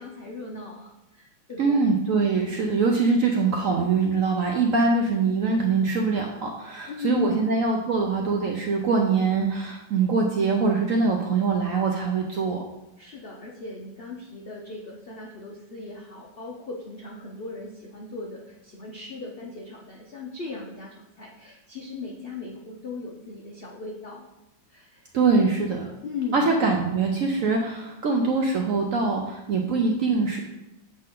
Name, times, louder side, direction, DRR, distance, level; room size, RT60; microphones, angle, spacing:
voice 1, 0.0-1.9 6.9-7.5 13.0-24.3 24.7-25.1 26.0-26.4, left 3 dB, 85° left, -1 dB, 0.5 m, -38 dB
voice 2, 1.6-12.6 25.1-25.9 26.3-30.4, right 4 dB, 70° right, 1 dB, 0.8 m, -23 dB
7.4 x 4.3 x 3.7 m, 0.95 s
omnidirectional pair, 2.1 m